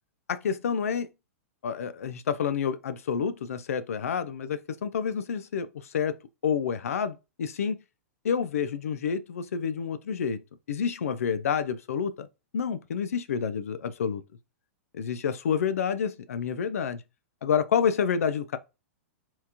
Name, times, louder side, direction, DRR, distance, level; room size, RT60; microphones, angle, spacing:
voice 1, 0.3-1.1 1.6-5.7 5.9-6.2 6.4-7.8 8.2-10.4 10.7-12.3 12.5-14.2 14.9-17.0 17.4-18.6, left 7 dB, 70° left, 0.6 m, -28 dB
4.3 x 3.9 x 2.9 m
hypercardioid pair, 110°, 8 cm